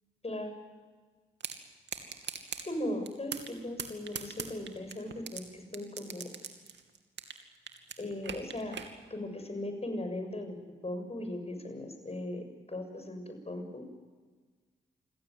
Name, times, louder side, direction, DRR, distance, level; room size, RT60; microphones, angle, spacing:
sound 1, 1.4-1.6 1.9-2.6 3.1-3.5 3.8-5.4 5.7-7.4 7.7-8.9, right 7 dB, 70° right, 2.7 m, -39 dB
voice 1, 2.6-6.3 8.0-8.8 9.1-10.6 10.8-13.9, left 1 dB, 30° left, 6 dB, 7.1 m, -38 dB
26.5 x 16.5 x 9.5 m, 1.4 s
supercardioid pair, 40°, 19 cm